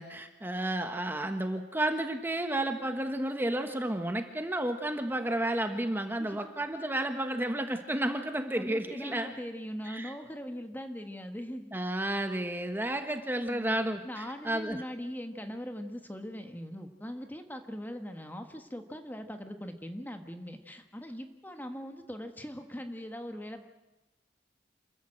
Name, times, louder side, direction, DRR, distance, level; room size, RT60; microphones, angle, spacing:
voice 1, 0.0-9.3 9.9-10.1 11.7-14.8, right 1 dB, 10° right, 6 dB, 1.3 m, -32 dB
voice 2, 6.2-6.5 8.5-11.7 13.4-13.8 14.0-23.7, equal, 10° left, 6 dB, 1.4 m, -41 dB
27.5 x 14.5 x 8.8 m, 1.1 s
head